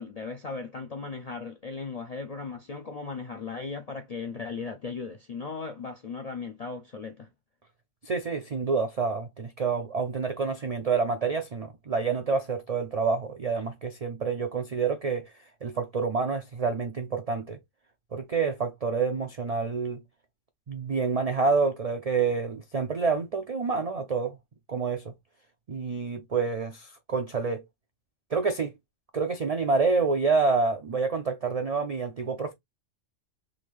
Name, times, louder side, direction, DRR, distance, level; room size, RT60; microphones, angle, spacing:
voice 1, 0.0-7.3, left 4 dB, 55° left, 0.4 m, -37 dB
voice 2, 8.0-15.3 15.6-17.6 18.1-20.0 20.7-24.4 24.7-25.0 25.7-27.6 28.3-28.7 29.1-32.5, right 4 dB, 65° right, 0.3 m, -28 dB
3.8 x 2.5 x 3.1 m
omnidirectional pair, 1.3 m